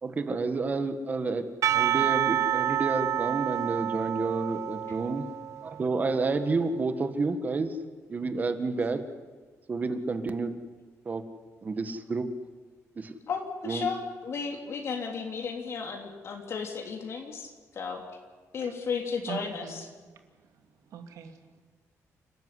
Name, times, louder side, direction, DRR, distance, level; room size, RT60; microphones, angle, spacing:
voice 1, 0.0-1.4 1.7-5.2 5.6-7.8 8.1-9.0 9.7-10.5 11.0-11.2 11.6-12.3 12.9-13.1 13.6-13.9, right 3 dB, 30° right, 8 dB, 1.7 m, -29 dB
Percussion / Church bell, 1.6-6.0, right 11 dB, 65° right, 0.6 m, -28 dB
voice 2, 13.3-18.0 18.5-19.8, left 5 dB, 50° left, 2 dB, 3.2 m, -34 dB
voice 3, 19.3-19.9 20.2-21.6, right 8 dB, 85° right, 5 dB, 2.6 m, -43 dB
29.0 x 13.5 x 9.7 m, 1.4 s
cardioid pair, 150°, 6 cm